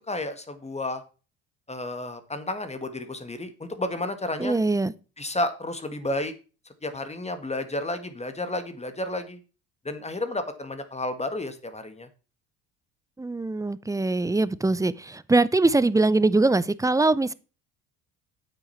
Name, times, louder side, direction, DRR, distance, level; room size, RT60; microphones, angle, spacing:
voice 1, 0.1-1.0 1.7-4.6 5.2-6.3 6.8-9.4 9.8-12.1, left 1 dB, 20° left, 1.6 m, -31 dB
voice 2, 4.4-4.9 13.2-17.3, right 2 dB, 10° right, 0.6 m, -22 dB
8.5 x 6.2 x 5.7 m
hypercardioid pair, 65°, 36 cm